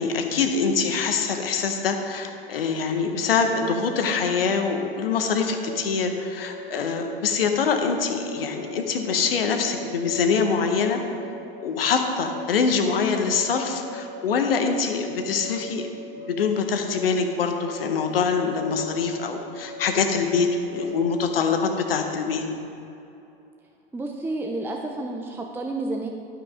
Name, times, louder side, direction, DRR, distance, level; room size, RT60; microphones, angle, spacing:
voice 1, 0.0-11.0 11.6-15.8 16.1-22.4, left 5 dB, 70° left, 5 dB, 1.1 m, -24 dB
sound 1, 3.4-22.2, left 1 dB, 60° right, 1.3 m, -41 dB
voice 2, 23.9-26.1, right 2 dB, 5° right, 2 dB, 0.6 m, -30 dB
12.0 x 6.1 x 4.9 m, 2.8 s
figure-of-eight pair, 85°, 30 cm